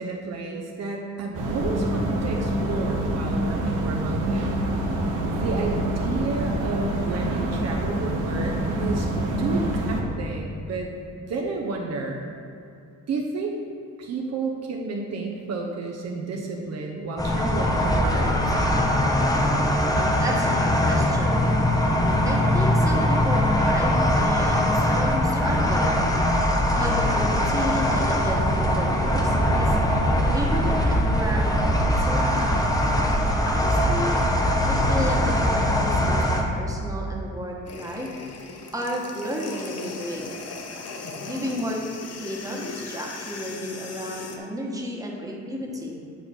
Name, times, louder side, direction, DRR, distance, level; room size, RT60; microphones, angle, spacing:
voice 1, 0.0-4.5 5.3-9.1 9.4-10.9 11.3-12.2 13.1-13.5 14.0-18.3, right 3 dB, 55° right, 0 dB, 0.9 m, -31 dB
sound 1, 1.3-10.0, right 1 dB, 85° right, 1.2 m, -26 dB
sound 2, 17.2-36.4, left 1 dB, 10° left, 0.9 m, -21 dB
voice 2, 19.7-21.4 22.2-26.0 26.7-29.7 30.3-32.4 33.2-34.2 34.6-38.1 38.7-40.3 41.2-41.8 42.2-46.0, equal, 10° right, -2 dB, 1.3 m, -32 dB
sound 3, 37.6-44.4, left 4 dB, 55° left, 0.9 m, -38 dB
8.6 x 4.3 x 4.4 m, 2.4 s
cardioid pair, 90°, 30 cm